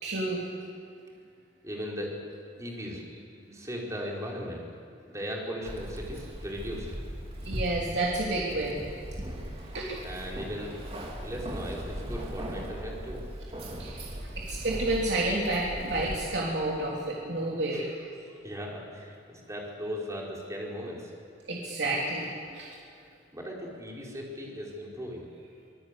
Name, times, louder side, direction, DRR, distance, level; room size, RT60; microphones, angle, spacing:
voice 1, 0.0-0.4 7.5-8.8 9.7-10.0 13.8-17.9 21.5-22.7, right 2 dB, 70° right, -4 dB, 3.3 m, -30 dB
voice 2, 1.6-2.1 2.6-3.0 3.5-4.6 5.1-6.9 9.7-9.8 10.0-10.8 11.2-13.2 17.7-17.9 18.2-21.1 23.3-25.3, equal, 20° right, -2 dB, 4.7 m, -38 dB
Keys jangling, 5.7-16.2, equal, 35° right, 3.0 m, -38 dB
25.5 x 19.5 x 8.3 m, 2.4 s
head